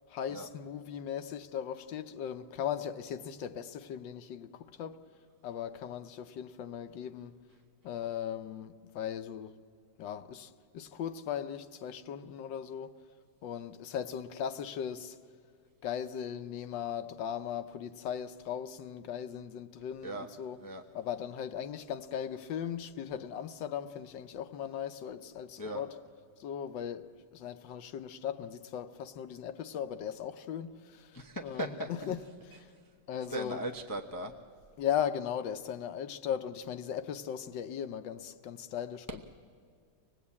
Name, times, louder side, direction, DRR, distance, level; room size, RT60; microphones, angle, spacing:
voice 1, 0.1-5.0 5.4-7.4 7.8-9.6 10.0-12.9 13.4-15.2 15.8-20.6 20.9-25.9 26.4-32.7 33.1-33.6 34.8-39.2, left 9 dB, 90° left, 1.5 m, -38 dB
voice 2, 31.1-32.1 33.3-34.3 39.1-39.2, right 1 dB, 25° left, 0.5 m, -38 dB
25.0 x 18.5 x 8.5 m
omnidirectional pair, 1.9 m